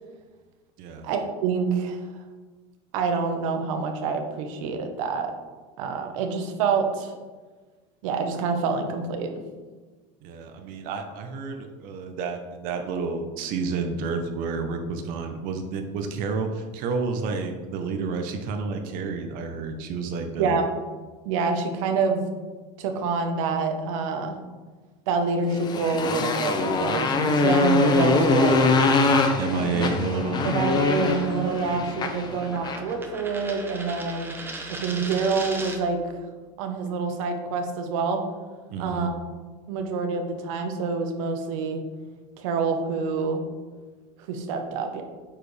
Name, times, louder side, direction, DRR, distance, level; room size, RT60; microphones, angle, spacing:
voice 1, 1.0-2.0 2.9-5.3 5.8-7.1 8.0-9.3 20.4-20.7 21.2-22.2 22.8-24.4 25.1-28.6 30.4-34.3 34.8-36.2 36.6-38.2 38.8-39.1 39.7-41.8 42.4-43.4 44.3-45.0, right 4 dB, 85° right, 5 dB, 1.1 m, -26 dB
voice 2, 10.2-20.6 29.4-30.5 38.7-39.1, right 4 dB, 60° right, 5 dB, 0.8 m, -30 dB
Motorcycle, 25.5-32.9, left 3 dB, 25° left, 0.7 m, -23 dB
sound 1, 27.9-36.0, right 2 dB, 15° right, 0.9 m, -40 dB
8.6 x 5.0 x 3.3 m, 1.4 s
cardioid pair, 140°, 16 cm